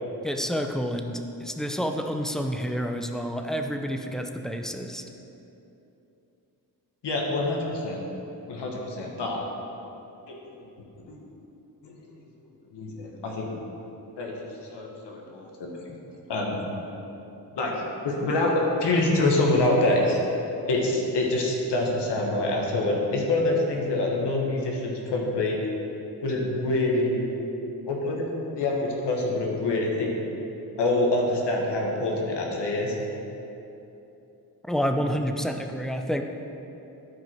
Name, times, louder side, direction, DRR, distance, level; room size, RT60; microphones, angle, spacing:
voice 1, 0.2-5.0 34.6-36.2, equal, ahead, 5 dB, 0.5 m, -29 dB
voice 2, 7.0-8.0 8.5-9.5 10.3-10.4 11.1-11.2 11.8-12.0 12.7-13.5 14.2-14.3 14.7-15.9 16.3-16.6 17.5-20.2 20.7-25.6 26.2-27.2 27.9-28.3 28.5-30.1 30.8-32.9, left 2 dB, 80° left, -1 dB, 1.6 m, -26 dB
12.0 x 5.1 x 4.5 m, 2.9 s
cardioid pair, 90°, 41 cm